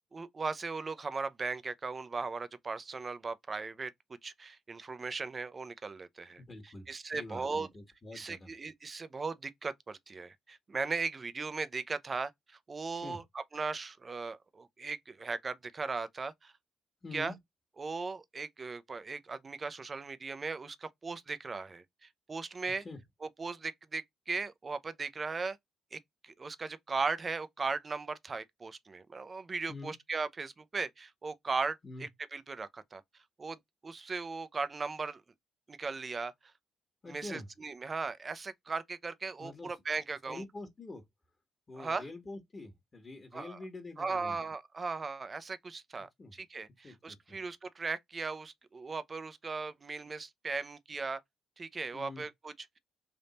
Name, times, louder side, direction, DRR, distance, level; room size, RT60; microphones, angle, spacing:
voice 1, 0.1-3.9 4.2-7.7 8.1-16.5 17.1-17.3 17.8-21.8 22.3-22.8 23.4-25.6 25.9-33.0 33.4-33.6 33.8-35.2 35.7-36.3 37.1-40.4 41.8-42.0 43.3-43.6 44.0-51.2 51.6-52.8, right 4 dB, 30° right, 0.6 m, -38 dB
voice 2, 6.4-6.9 7.1-8.5 12.9-13.2 17.0-17.4 22.8-23.0 29.7-29.9 31.8-32.1 37.0-37.5 39.4-39.7 40.3-41.0 41.7-44.4 46.2-46.3 46.8-47.4 51.9-52.2, left 2 dB, 30° left, 1.4 m, -46 dB
3.5 x 2.6 x 4.0 m
cardioid pair, 90°, 0 cm